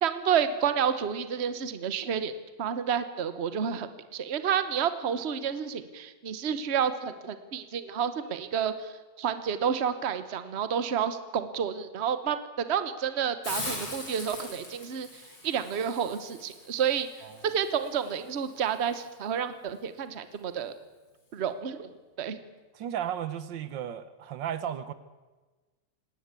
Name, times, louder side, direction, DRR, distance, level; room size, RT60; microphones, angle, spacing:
voice 1, 0.0-2.3 2.6-8.9 9.2-15.1 15.4-20.7 21.3-21.9 22.2-22.4, right 8 dB, 40° right, 1.2 m, -30 dB
Hiss, 13.4-19.1, left 2 dB, 75° left, 5.6 m, -42 dB
voice 2, 22.7-24.9, right 9 dB, 80° right, 1.6 m, -34 dB
19.0 x 18.0 x 8.3 m
omnidirectional pair, 2.0 m